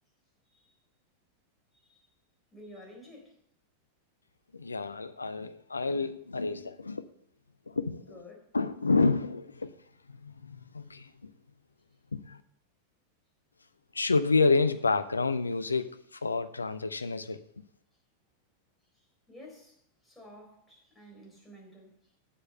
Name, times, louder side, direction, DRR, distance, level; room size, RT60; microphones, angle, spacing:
voice 1, 1.7-2.1 2.5-3.4 8.1-8.5 18.9-22.2, left 1 dB, 5° left, 4.1 m, -52 dB
voice 2, 4.5-7.1 7.7-8.0 8.5-9.7 10.1-11.3 12.1-12.4 13.9-17.6, left 3 dB, 80° left, 0.6 m, -29 dB
8.7 x 7.4 x 5.5 m
figure-of-eight pair, 90°, 0 cm